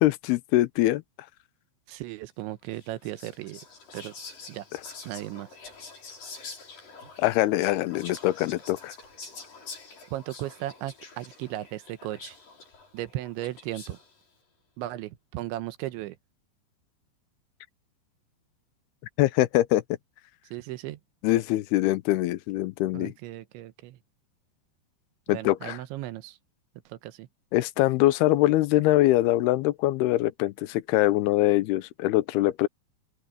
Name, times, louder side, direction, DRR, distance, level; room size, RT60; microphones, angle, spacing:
voice 1, 0.0-1.0 7.2-8.9 19.2-19.8 21.2-23.1 25.3-25.8 27.5-32.7, left 16 dB, 80° left, 2.3 m, -23 dB
voice 2, 1.9-3.6 3.9-4.1 4.5-4.7 5.0-5.5 10.1-12.4 12.9-14.0 14.8-16.2 20.5-21.0 22.9-24.0 25.3-26.4 26.9-27.3, right 15 dB, 80° right, 3.2 m, -36 dB
Whispering, 2.7-14.2, left 4 dB, 45° left, 7.7 m, -46 dB
open air
omnidirectional pair, 5.4 m